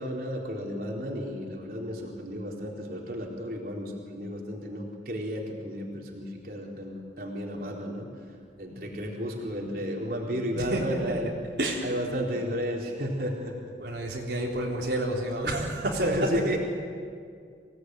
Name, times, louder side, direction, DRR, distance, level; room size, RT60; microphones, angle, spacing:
voice 1, 0.0-8.1 8.6-11.3 11.8-13.5 16.0-16.6, equal, 55° right, -1 dB, 4.1 m, -33 dB
voice 2, 10.6-11.2 11.6-11.9 13.8-16.3, right 1 dB, 75° right, -3 dB, 3.8 m, -29 dB
26.5 x 18.5 x 9.5 m, 2.2 s
head